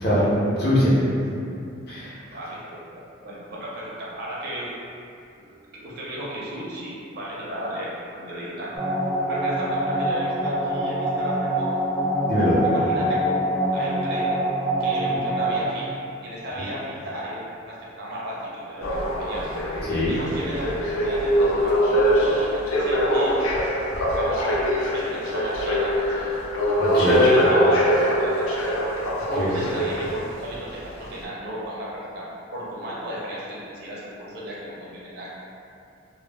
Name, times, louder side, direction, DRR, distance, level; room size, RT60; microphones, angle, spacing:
voice 1, 0.0-1.0 1.9-2.1 12.3-12.6 19.9-20.1 26.8-27.3 29.4-29.5, equal, 50° left, -9 dB, 0.7 m, -21 dB
voice 2, 2.3-4.7 5.3-5.5 5.7-8.8 9.3-11.8 12.6-13.4 13.7-14.3 14.8-19.5 20.1-23.4 24.1-24.7 24.9-26.3 27.1-27.9 28.2-28.6 29.2-32.3 32.5-35.3, right 1 dB, 50° right, -6 dB, 0.5 m, -34 dB
sound 1, 8.7-15.6, right 1 dB, ahead, 0.5 m, -24 dB
sound 2, 18.8-30.4 31.1-31.2, equal, 90° left, 0.4 m, -23 dB
2.2 x 2.0 x 3.3 m, 2.6 s
head